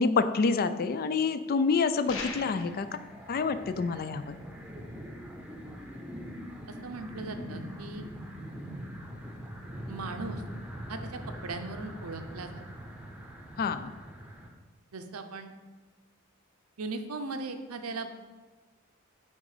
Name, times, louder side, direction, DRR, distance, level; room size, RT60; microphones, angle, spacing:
voice 1, 0.0-2.9 3.3-4.4 13.6-13.9, left 4 dB, 45° left, 12 dB, 0.4 m, -27 dB
Rocks hit, 2.1-2.8, left 4 dB, 65° left, 1.1 m, -38 dB
sound 1, 2.1-14.5, equal, 5° right, 0.8 m, -43 dB
voice 2, 6.8-8.1 9.9-10.4 10.9-12.5 14.9-15.5 16.8-18.1, right 3 dB, 85° right, 7 dB, 0.7 m, -38 dB
9.0 x 3.7 x 4.9 m, 1.3 s
head